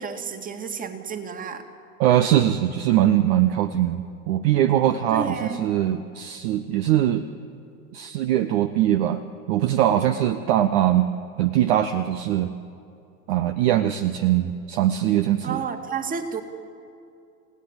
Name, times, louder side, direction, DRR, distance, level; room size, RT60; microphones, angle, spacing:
voice 1, 0.0-1.6 4.8-5.7 15.4-16.4, right 6 dB, 15° right, 7 dB, 2.1 m, -31 dB
voice 2, 2.0-7.2 7.9-9.2 9.5-11.1 11.4-12.5 13.3-15.6, right 12 dB, 40° right, 9 dB, 1.0 m, -21 dB
28.5 x 17.0 x 8.9 m, 2.6 s
figure-of-eight pair, 95°, 48 cm